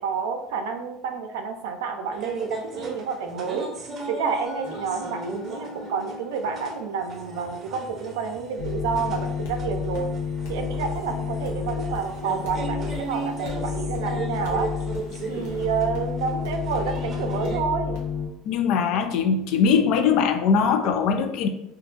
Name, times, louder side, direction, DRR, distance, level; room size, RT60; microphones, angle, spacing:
voice 1, 0.0-3.7 4.1-10.2 10.5-14.7 15.3-18.0, right 6 dB, 85° right, 0.5 m, -29 dB
sound 1, 2.1-17.6, right 3 dB, 35° right, 0.7 m, -37 dB
Musical instrument, 4.4-10.8, left 1 dB, 35° left, 1.3 m, -44 dB
sound 2, 8.6-18.3, left 6 dB, 80° left, 0.9 m, -30 dB
voice 2, 18.5-21.5, left 6 dB, 65° left, 0.4 m, -21 dB
2.6 x 2.4 x 3.7 m
supercardioid pair, 105°, 0 cm